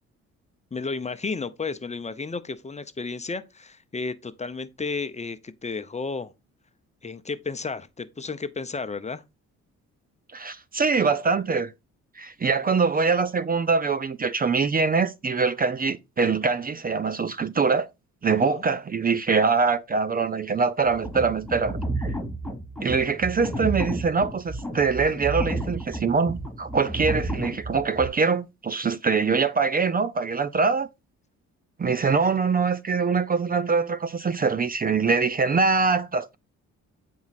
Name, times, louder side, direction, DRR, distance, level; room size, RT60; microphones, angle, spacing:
voice 1, 0.7-6.3 7.0-9.2 18.3-18.6, left 4 dB, 20° left, 0.8 m, -33 dB
voice 2, 10.3-11.7 12.2-17.9 18.2-22.2 22.8-30.9 31.8-36.3, right 4 dB, 30° right, 0.5 m, -23 dB
sound 1, 20.9-28.1, right 1 dB, ahead, 3.0 m, -31 dB
8.5 x 4.7 x 4.1 m
cardioid pair, 90°, 30 cm